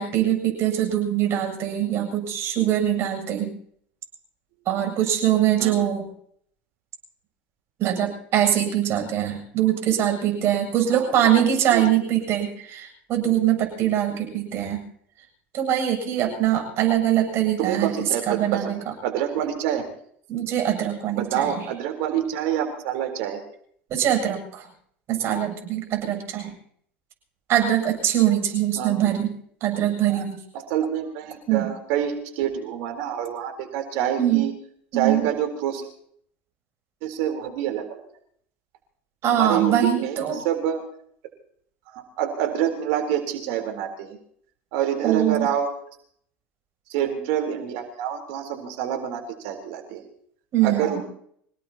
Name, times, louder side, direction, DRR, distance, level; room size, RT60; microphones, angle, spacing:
voice 1, 0.0-3.5 4.7-6.1 7.8-14.8 15.5-18.8 20.3-21.7 23.9-24.6 25.1-26.5 27.5-29.3 29.6-30.4 31.5-31.7 34.2-34.4 34.9-35.3 39.2-40.4 45.0-45.5 50.5-51.0, right 11 dB, 50° right, 3 dB, 7.7 m, -23 dB
voice 2, 10.9-11.4 11.7-11.8 17.6-18.8 19.0-19.8 21.1-23.4 28.8-28.9 30.5-34.5 34.9-35.8 37.0-38.0 39.3-40.8 41.9-44.2 44.7-45.7 46.9-50.0 50.6-51.0, right 10 dB, 65° right, 4 dB, 3.9 m, -27 dB
27.0 x 18.0 x 2.9 m, 0.64 s
hypercardioid pair, 80°, 6 cm